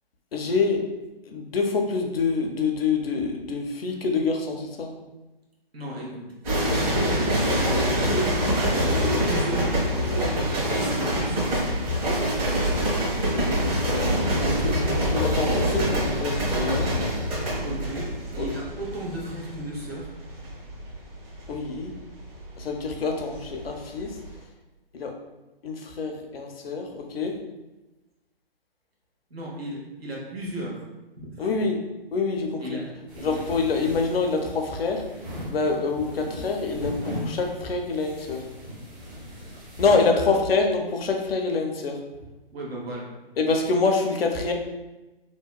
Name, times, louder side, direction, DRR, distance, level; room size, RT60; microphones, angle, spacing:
voice 1, 0.3-0.8 1.2-4.9 13.3-13.6 14.4-17.0 18.4-18.5 21.5-21.9 22.6-24.1 24.9-25.1 25.6-27.3 31.4-31.8 32.1-32.8 33.2-35.0 35.5-38.4 39.8-42.0 43.4-44.5, left 4 dB, 75° left, 3 dB, 0.5 m, -26 dB
voice 2, 5.7-6.8 7.5-12.3 13.9-14.8 17.6-20.1 29.3-30.8 31.3-31.6 32.6-33.4 39.8-40.0 42.5-43.1, right 1 dB, 85° right, -3 dB, 1.0 m, -36 dB
sound 1, 6.4-23.7 24.0-24.4, equal, 35° right, 1.1 m, -25 dB
sound 2, 33.1-40.0, equal, 20° right, 0.5 m, -38 dB
2.8 x 2.1 x 2.2 m, 1.1 s
figure-of-eight pair, 140°, 30 cm